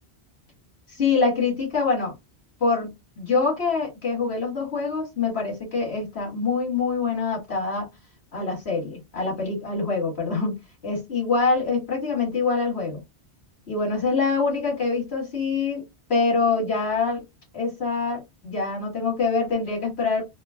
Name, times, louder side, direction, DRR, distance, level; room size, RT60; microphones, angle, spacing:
voice 1, 1.0-2.1 2.6-7.9 8.3-10.6 10.8-13.0 13.7-17.2 17.5-20.2, left 4 dB, 75° left, 2.4 m, -25 dB
4.4 x 2.1 x 2.3 m
omnidirectional pair, 1.1 m